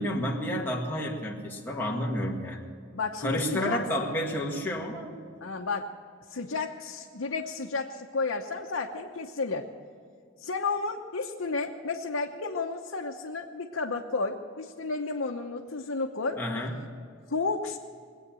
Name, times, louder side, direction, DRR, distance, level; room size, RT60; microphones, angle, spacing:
voice 1, 0.0-2.6 3.2-5.2 16.4-16.9, equal, 10° left, -3 dB, 1.8 m, -30 dB
voice 2, 2.9-4.1 5.4-5.9 6.3-9.7 10.4-16.4 17.3-17.8, left 4 dB, 85° left, 0 dB, 0.9 m, -32 dB
21.5 x 8.9 x 7.6 m, 2.3 s
head